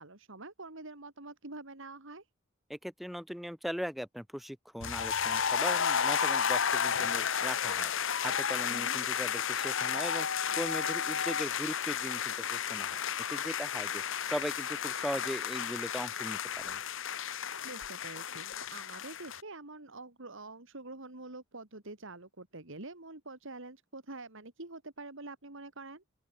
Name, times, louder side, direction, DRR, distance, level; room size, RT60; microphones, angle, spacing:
voice 1, 0.0-2.2 8.7-9.0 17.6-26.0, right 2 dB, 65° right, 3.3 m, -46 dB
voice 2, 2.7-7.9 8.2-10.3 10.5-13.0 13.3-16.8, equal, ahead, 0.7 m, -39 dB
sound 1, 4.8-19.4, left 7 dB, 65° left, 1.3 m, -32 dB
sound 2, 16.5-17.1 17.5-18.1 18.5-18.9 19.3-19.4, left 2 dB, 45° left, 5.6 m, -63 dB
open air
head